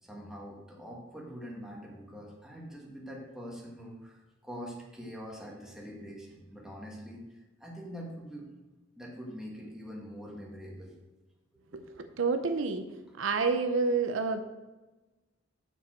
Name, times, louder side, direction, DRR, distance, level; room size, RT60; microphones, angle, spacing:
voice 1, 0.0-8.5 9.0-10.9 11.7-11.8, equal, 5° right, -3 dB, 1.7 m, -44 dB
voice 2, 11.7-12.8 13.2-14.4, right 4 dB, 85° right, 7 dB, 0.7 m, -29 dB
7.2 x 7.0 x 4.4 m, 1.1 s
head